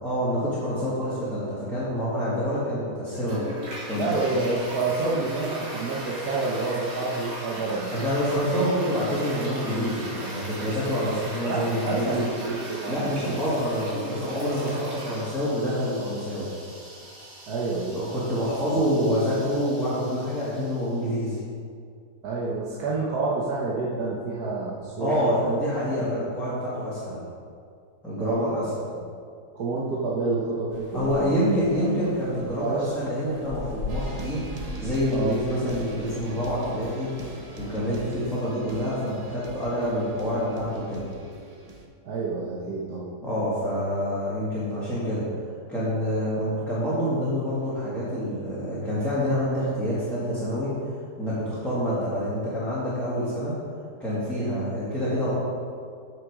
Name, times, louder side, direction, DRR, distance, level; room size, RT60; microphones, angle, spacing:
voice 1, 0.0-3.4 3.9-4.4 7.9-12.2 12.9-16.5 17.9-21.4 25.0-27.2 28.0-28.6 30.9-34.4 34.8-37.1 37.6-41.1 43.2-45.2 45.7-50.7 51.2-53.6 54.0-55.3, equal, ahead, -12 dB, 2.0 m, -27 dB
Toilet flush, 3.1-21.0, equal, 90° right, 2.9 m, -39 dB
voice 2, 4.0-7.9 11.4-13.4 17.5-18.0 18.7-18.8 22.2-25.6 26.0-26.1 28.2-28.4 29.5-31.9 32.4-32.9 35.1-35.4 42.0-43.1, right 3 dB, 70° right, -5 dB, 1.5 m, -28 dB
sound 1, 30.7-38.5, left 2 dB, 85° left, 2.3 m, -40 dB
sound 2, 33.9-41.9, right 3 dB, 35° right, 0.6 m, -42 dB
8.9 x 6.3 x 4.8 m, 2.2 s
omnidirectional pair, 1.8 m